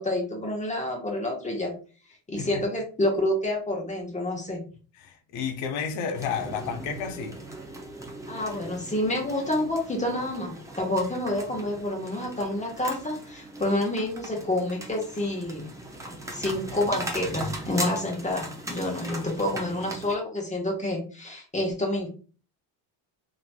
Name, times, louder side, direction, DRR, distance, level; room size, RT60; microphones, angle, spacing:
voice 1, 0.0-1.7 2.3-4.6 8.3-15.7 16.1-22.1, left 1 dB, 15° left, 1.0 m, -28 dB
voice 2, 5.0-7.4, left 7 dB, 80° left, 0.8 m, -31 dB
sound 1, 6.1-20.1, right 1 dB, 5° right, 0.4 m, -39 dB
2.9 x 2.9 x 2.2 m
cardioid pair, 110°, 50 cm